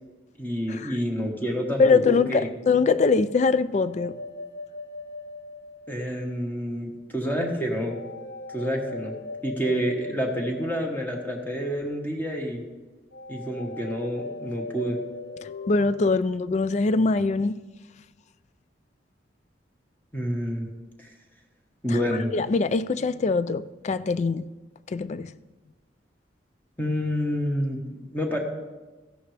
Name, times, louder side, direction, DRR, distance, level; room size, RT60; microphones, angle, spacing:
voice 1, 0.4-2.5 5.9-8.0 8.5-9.1 9.4-12.6 13.3-15.0 20.1-20.7 21.0-21.1 21.8-22.3 26.8-28.4, equal, 10° left, 1.4 m, -28 dB
voice 2, 1.8-4.2 15.4-17.6 21.9-22.0 22.3-24.5 24.9-25.3, left 4 dB, 40° left, 0.3 m, -23 dB
sound 1, 3.8-6.5 7.8-11.8 13.1-16.2, left 2 dB, 90° left, 0.8 m, -39 dB
14.0 x 11.0 x 3.4 m
head